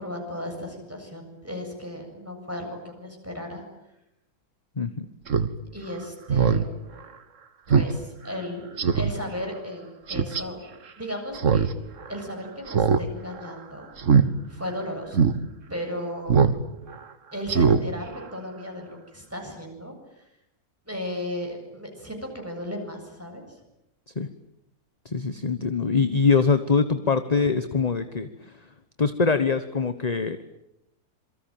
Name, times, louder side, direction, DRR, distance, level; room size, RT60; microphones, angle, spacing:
voice 1, 0.0-3.6 5.7-6.6 7.7-10.6 11.0-11.7 12.1-13.9 14.5-15.2 15.7-16.4 17.3-20.3 20.9-23.6, left 1 dB, 10° right, 2 dB, 7.7 m, -35 dB
voice 2, 4.8-5.1 24.2-24.3 25.0-28.3 29.0-30.4, left 5 dB, 30° left, 10 dB, 1.2 m, -23 dB
Speech synthesizer, 5.3-5.5 5.9-6.0 6.3-6.6 7.0-7.1 7.7-7.9 8.3-8.4 8.8-9.1 10.1-10.4 11.3-11.7 12.0-12.1 12.7-13.0 13.3-13.5 14.0-14.3 14.7-14.8 15.1-15.3 16.3-16.6 16.9-17.0 17.5-17.8 18.2-18.3, right 6 dB, 60° right, 1.7 m, -20 dB
27.0 x 24.0 x 9.2 m, 0.85 s
omnidirectional pair, 1.6 m